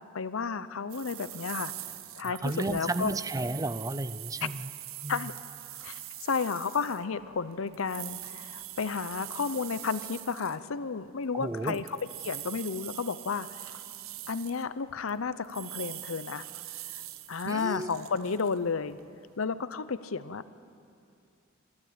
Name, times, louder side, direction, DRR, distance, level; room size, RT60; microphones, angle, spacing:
voice 1, 0.1-1.7 2.2-3.1 5.1-5.3 5.8-12.0 12.2-13.5 14.3-16.4 17.3-19.0 19.4-20.4, left 5 dB, 80° left, 14 dB, 0.7 m, -32 dB
sound 1, 0.9-10.6 11.4-15.2 15.4-19.3, right 14 dB, 85° right, 0.8 m, -43 dB
voice 2, 2.2-4.7 5.0-5.3 11.3-11.8 17.5-17.9, right 2 dB, 15° right, 13 dB, 0.5 m, -33 dB
29.0 x 12.5 x 8.8 m, 2.5 s
head